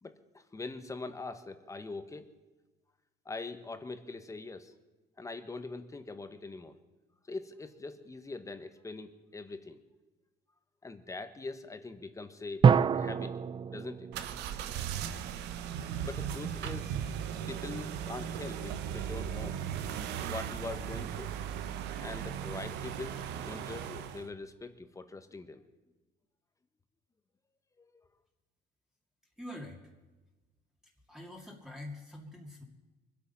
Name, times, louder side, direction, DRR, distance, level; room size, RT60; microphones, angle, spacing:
voice 1, 0.0-2.3 3.2-4.7 5.2-6.8 7.3-9.8 10.8-12.7 12.9-13.4 13.7-14.1 16.0-17.0 17.5-19.6 20.2-21.3 22.0-25.6 27.8-27.9, left 3 dB, 20° left, 9 dB, 1.3 m, -43 dB
sound 1, 12.6-15.4, right 6 dB, 30° right, 0.4 m, -27 dB
sound 2, 14.1-24.3, right 9 dB, 85° right, 0.9 m, -37 dB
voice 2, 29.4-29.8 31.1-32.6, left 1 dB, 5° right, -1 dB, 2.3 m, -45 dB
23.5 x 8.5 x 5.6 m, 1.2 s
cardioid pair, 110°, 17 cm